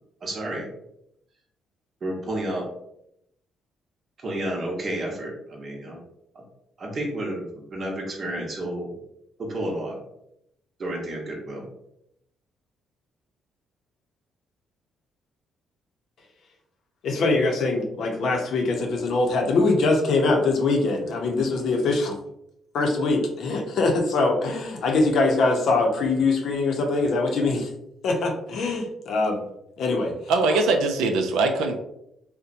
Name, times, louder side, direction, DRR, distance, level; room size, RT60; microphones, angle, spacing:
voice 1, 0.2-0.7 2.0-2.7 4.2-6.0 6.3-6.4 6.8-8.9 9.4-10.0 10.8-11.6, right 1 dB, 50° right, 0 dB, 0.8 m, -31 dB
voice 2, 17.0-22.2 22.7-27.7 28.0-29.5 29.8-30.1, left 3 dB, 70° left, 2 dB, 0.6 m, -23 dB
voice 3, 30.3-31.7, right 3 dB, 80° right, 4 dB, 0.3 m, -21 dB
2.7 x 2.1 x 2.5 m, 0.78 s
supercardioid pair, 60°, 0 cm